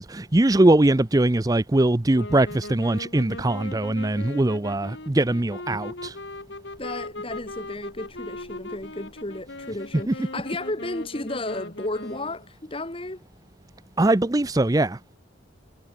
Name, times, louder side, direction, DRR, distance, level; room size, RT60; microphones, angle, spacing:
voice 1, 0.0-6.2 10.1-10.2 14.0-15.0, right 1 dB, 20° right, 0.5 m, -21 dB
sound 1, 2.1-12.5, left 2 dB, 65° left, 2.7 m, -39 dB
voice 2, 6.8-13.2, left 2 dB, 30° left, 1.7 m, -33 dB
head